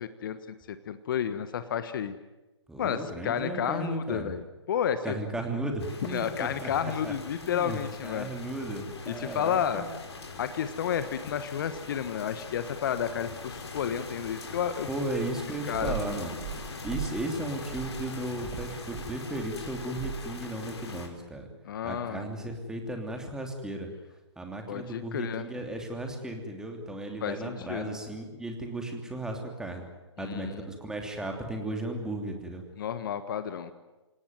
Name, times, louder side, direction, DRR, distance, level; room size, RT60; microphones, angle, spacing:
voice 1, 0.0-2.1 2.8-5.2 6.1-8.3 9.1-9.9 10.4-14.9 15.7-16.2 20.8-21.0 21.6-22.3 24.7-25.5 27.2-28.0 30.2-30.6 32.8-33.7, left 8 dB, 45° left, 11 dB, 1.4 m, -31 dB
voice 2, 2.7-4.3 5.0-7.1 7.4-9.9 14.9-16.4 16.8-21.5 21.8-23.9 24.4-29.8 30.2-32.6, right 1 dB, 5° right, 3 dB, 3.0 m, -35 dB
sound 1, 5.8-21.1, left 4 dB, 65° left, 5.0 m, -42 dB
sound 2, 15.7-17.3 17.6-20.4, right 11 dB, 25° right, 1.7 m, -39 dB
27.5 x 18.0 x 9.4 m, 1.1 s
figure-of-eight pair, 135°, 15 cm